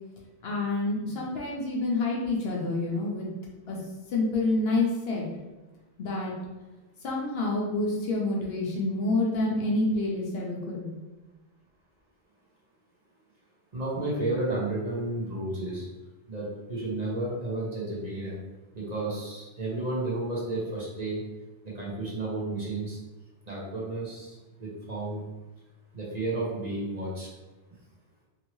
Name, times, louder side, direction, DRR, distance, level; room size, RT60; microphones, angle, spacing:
voice 1, 0.4-3.3 3.7-3.8 4.1-5.3 6.0-6.3 7.0-10.9, left 2 dB, 65° left, -3 dB, 0.9 m, -28 dB
voice 2, 13.7-15.9 16.3-18.3 18.7-21.2 21.6-23.0 23.4-25.2 25.9-27.3, right 2 dB, 40° right, -7 dB, 0.9 m, -32 dB
2.9 x 2.7 x 3.0 m, 1.1 s
omnidirectional pair, 1.2 m